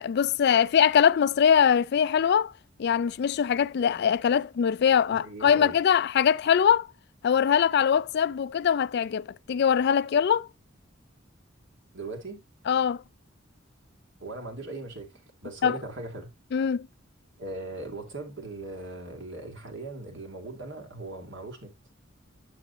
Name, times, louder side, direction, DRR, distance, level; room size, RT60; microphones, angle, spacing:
voice 1, 0.0-2.5 2.8-6.9 7.2-10.5 12.7-13.0 15.6-15.8 16.5-16.9, left 8 dB, 55° left, 0.3 m, -22 dB
voice 2, 5.1-5.8 11.9-12.4 14.2-15.1 15.4-16.3 17.4-21.7, right 2 dB, 65° right, 2.8 m, -39 dB
9.0 x 7.7 x 2.7 m
head